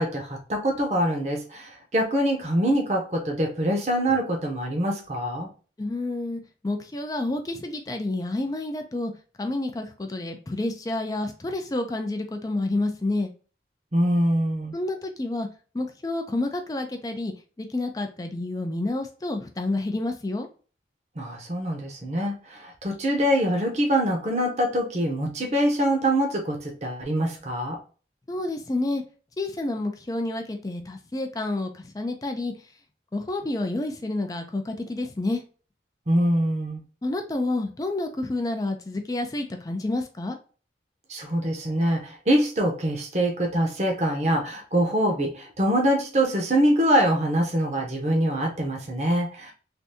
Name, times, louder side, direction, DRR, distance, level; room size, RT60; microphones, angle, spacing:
voice 1, 0.0-5.5 13.9-14.7 21.2-27.8 36.1-36.8 41.1-49.5, equal, 40° right, 1 dB, 0.8 m, -24 dB
voice 2, 5.8-9.1 9.4-13.3 14.7-15.5 15.7-20.5 28.3-29.0 29.4-32.5 33.1-35.4 37.0-40.4, left 2 dB, 20° left, 5 dB, 0.4 m, -29 dB
3.4 x 2.6 x 2.6 m, 0.37 s
head